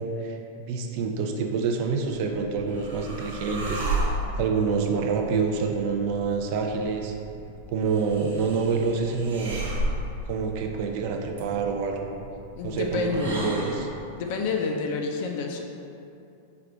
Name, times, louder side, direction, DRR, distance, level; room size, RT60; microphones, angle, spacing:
voice 1, 0.0-7.1 7.7-9.6 10.3-12.1 12.6-13.9, right 5 dB, 45° right, 3 dB, 0.4 m, -27 dB
sound 1, 2.1-14.1, right 1 dB, 80° right, 0.9 m, -34 dB
voice 2, 12.6-13.6 14.2-15.6, left 4 dB, 45° left, 2 dB, 0.4 m, -28 dB
4.6 x 2.3 x 3.8 m, 2.6 s
supercardioid pair, 160°, 0 cm